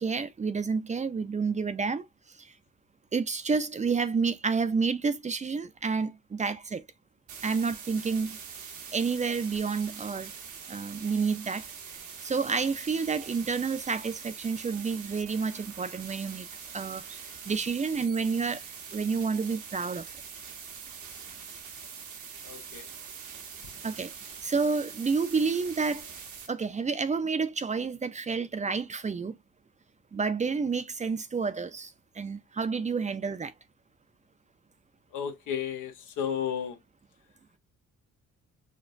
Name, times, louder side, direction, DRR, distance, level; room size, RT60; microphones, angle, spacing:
voice 1, 0.0-2.0 2.4-2.5 3.1-6.8 7.4-8.4 8.9-10.3 10.7-11.7 12.2-16.5 16.7-18.7 18.9-20.1 23.8-24.1 24.4-26.1 26.5-29.4 30.1-33.5, right 5 dB, 25° right, 0.4 m, -29 dB
sound 1, 7.3-26.5, right 6 dB, 85° right, 1.2 m, -44 dB
voice 2, 22.5-22.8 35.1-35.9 36.2-36.8, left 8 dB, 85° left, 1.0 m, -32 dB
5.1 x 2.1 x 2.5 m
cardioid pair, 90°, 30 cm